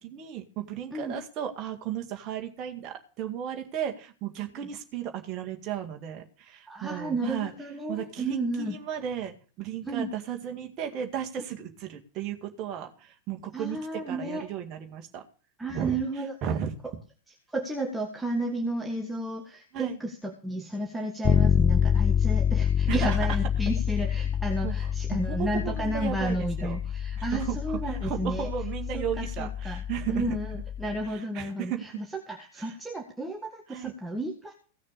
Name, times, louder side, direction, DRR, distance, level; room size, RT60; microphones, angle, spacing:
voice 1, 0.0-7.5 7.9-15.2 15.7-16.0 16.4-16.7 19.7-20.0 22.9-23.2 24.6-24.7 25.1-26.8 27.2-30.4 31.1-32.0 32.6-32.7 33.7-34.0, right 9 dB, 35° right, 3 dB, 2.0 m, -35 dB
voice 2, 6.7-8.7 9.8-10.1 13.5-14.5 15.6-16.3 17.5-28.5 28.9-29.8 30.1-34.5, right 1 dB, 5° right, 2 dB, 1.7 m, -32 dB
Bass guitar, 21.2-31.0, left 8 dB, 25° left, 0.7 m, -27 dB
16.5 x 6.5 x 6.8 m, 0.39 s
figure-of-eight pair, 90°, 0 cm